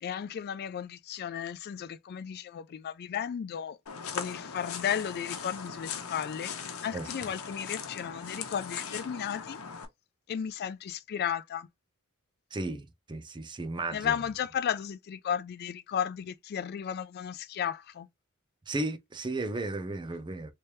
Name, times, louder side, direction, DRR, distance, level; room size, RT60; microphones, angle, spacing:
voice 1, 0.0-3.8 4.1-9.6 10.3-11.7 13.9-18.1, left 8 dB, 50° left, 0.3 m, -34 dB
sound 1, 3.9-9.9, left 6 dB, 85° left, 0.8 m, -39 dB
voice 2, 12.5-14.1 18.7-20.5, right 2 dB, 20° right, 0.5 m, -34 dB
3.3 x 3.1 x 2.7 m
head